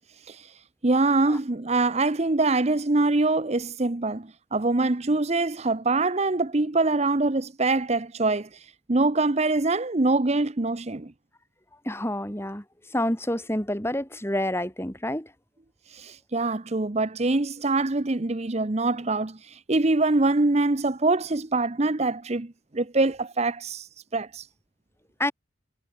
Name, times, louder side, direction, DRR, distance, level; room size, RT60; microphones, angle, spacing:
voice 1, 0.8-11.1 15.9-24.5, right 2 dB, 30° right, 0.8 m, -24 dB
voice 2, 11.9-12.6 12.9-15.3 25.2-25.3, left 1 dB, 10° left, 3.9 m, -28 dB
head